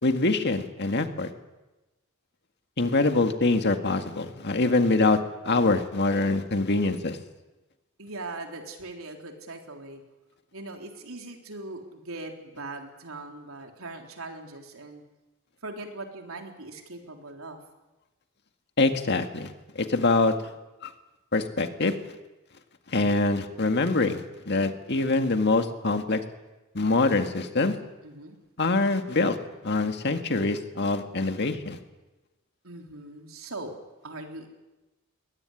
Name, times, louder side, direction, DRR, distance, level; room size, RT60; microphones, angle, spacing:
voice 1, 0.0-1.3 2.8-5.2 5.4-7.2 18.8-20.3 20.8-20.9 21.3-22.0 22.9-24.2 24.5-26.2 26.7-27.8 28.6-29.4 29.6-31.8, left 3 dB, 55° left, 7 dB, 1.9 m, -24 dB
voice 2, 8.0-10.0 10.5-15.0 15.6-17.6 28.0-28.4 32.6-34.5, right 2 dB, 90° right, 3 dB, 3.7 m, -40 dB
22.0 x 18.5 x 10.0 m, 1.1 s
head